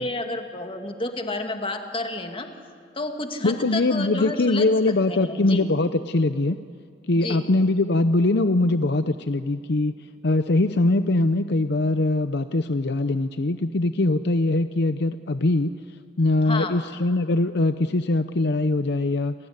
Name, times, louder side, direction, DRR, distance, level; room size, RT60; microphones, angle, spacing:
voice 1, 0.0-2.5 3.0-4.7 5.1-5.7 7.1-7.5 16.4-16.8, left 2 dB, 30° left, 5 dB, 2.2 m, -30 dB
voice 2, 3.4-6.6 7.1-9.9 10.2-15.7 16.2-19.3, left 2 dB, 60° left, 10 dB, 0.7 m, -22 dB
30.0 x 19.0 x 9.8 m, 2.3 s
head